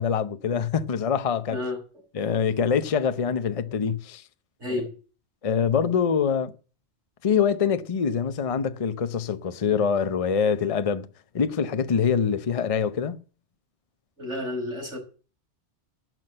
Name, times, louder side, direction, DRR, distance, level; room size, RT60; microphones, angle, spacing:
voice 1, 0.0-1.6 2.1-4.2 5.4-6.5 7.2-11.1 11.3-13.2, left 6 dB, 35° left, 0.7 m, -24 dB
voice 2, 1.5-1.8 4.6-5.0 14.2-15.0, left 2 dB, 85° right, 5.6 m, -31 dB
12.0 x 6.2 x 7.8 m
omnidirectional pair, 1.2 m